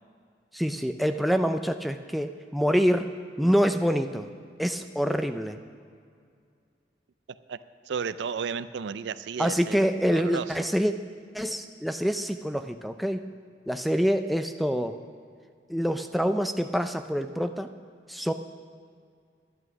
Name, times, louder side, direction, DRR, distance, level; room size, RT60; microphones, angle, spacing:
voice 1, 0.5-3.1 3.4-4.3 4.6-5.6 9.4-10.9 11.3-13.2 13.7-15.0 15.7-17.7 18.1-18.3, equal, ahead, 6 dB, 0.4 m, -26 dB
voice 2, 7.9-9.8 10.1-10.5, right 6 dB, 75° right, 15 dB, 0.4 m, -32 dB
11.0 x 11.0 x 6.2 m, 2.2 s
head